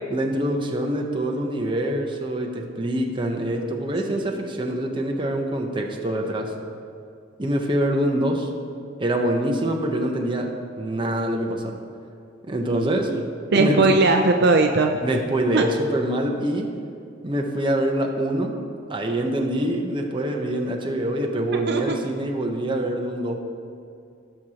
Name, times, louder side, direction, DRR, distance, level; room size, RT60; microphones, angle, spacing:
voice 1, 0.1-6.5 7.4-8.5 9.0-11.8 12.5-13.1 13.6-13.9 15.0-16.8 17.2-18.6 18.9-23.4, right 1 dB, 25° right, 1 dB, 0.9 m, -25 dB
voice 2, 12.7-13.2 13.5-15.0 15.5-15.6 21.7-22.0, right 3 dB, 55° right, 3 dB, 0.5 m, -19 dB
17.0 x 6.3 x 2.9 m, 2.4 s
head